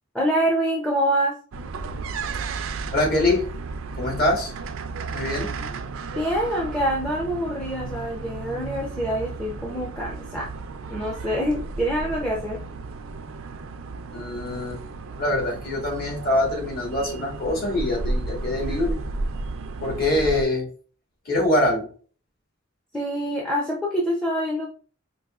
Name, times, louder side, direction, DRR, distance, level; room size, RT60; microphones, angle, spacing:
voice 1, 0.1-1.4 5.4-5.6 6.1-10.5 10.9-12.6 22.9-24.7, equal, 5° left, -2 dB, 0.5 m, -25 dB
sound 1, 1.5-20.4, right 3 dB, 80° right, 0.4 m, -33 dB
voice 2, 2.9-3.4 4.0-4.5 5.1-5.5 14.1-14.8 15.2-19.0 19.8-20.7 21.2-21.9, left 1 dB, 45° left, -1 dB, 1.3 m, -24 dB
4.7 x 2.7 x 2.3 m, 0.41 s
head